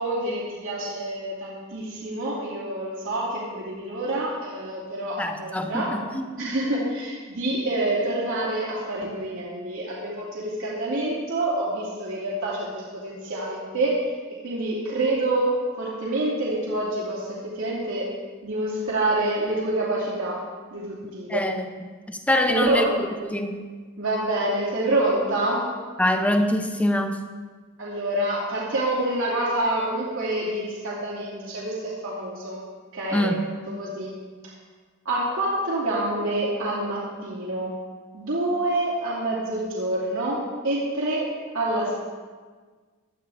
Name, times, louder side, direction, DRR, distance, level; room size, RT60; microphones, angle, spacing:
voice 1, 0.0-5.9 6.4-12.7 12.9-14.0 14.4-18.1 18.4-20.4 20.7-21.4 22.5-22.9 24.0-25.7 27.8-32.6 32.9-33.4 33.7-34.2 35.0-37.8 38.1-41.9, right 1 dB, 65° right, -7 dB, 2.7 m, -27 dB
voice 2, 5.2-6.2 21.3-21.7 22.1-22.9 23.2-23.7 26.0-27.2 33.1-33.4, left 1 dB, 5° left, 7 dB, 0.8 m, -24 dB
17.0 x 11.5 x 3.5 m, 1.5 s
head